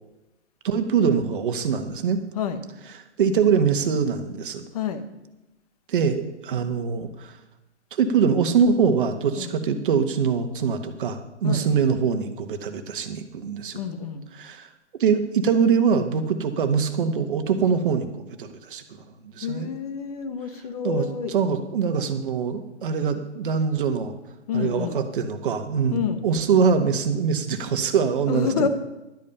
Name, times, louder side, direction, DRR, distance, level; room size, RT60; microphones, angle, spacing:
voice 1, 0.6-2.2 2.9-4.6 5.9-7.4 7.9-13.8 14.3-14.7 15.0-18.8 19.2-19.7 20.8-24.1 24.5-28.7, right 6 dB, 45° right, 7 dB, 1.3 m, -23 dB
voice 2, 13.7-14.2 19.4-21.3 24.5-25.0 25.9-26.2 28.3-28.7, left 7 dB, 30° left, 9 dB, 1.0 m, -28 dB
12.0 x 8.5 x 5.5 m, 0.98 s
hypercardioid pair, 140°, 36 cm